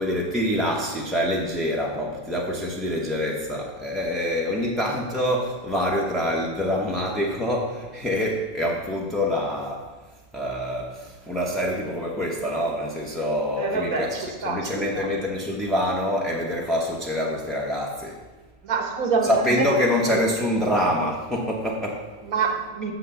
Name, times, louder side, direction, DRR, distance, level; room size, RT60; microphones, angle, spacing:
voice 1, 0.0-9.9 10.3-18.2 19.2-22.1, equal, ahead, -3 dB, 0.6 m, -26 dB
voice 2, 13.6-15.1 18.6-19.7 20.0-20.2 22.3-22.9, right 4 dB, 85° right, 3 dB, 1.7 m, -26 dB
6.9 x 6.0 x 6.8 m, 1.3 s
omnidirectional pair, 1.4 m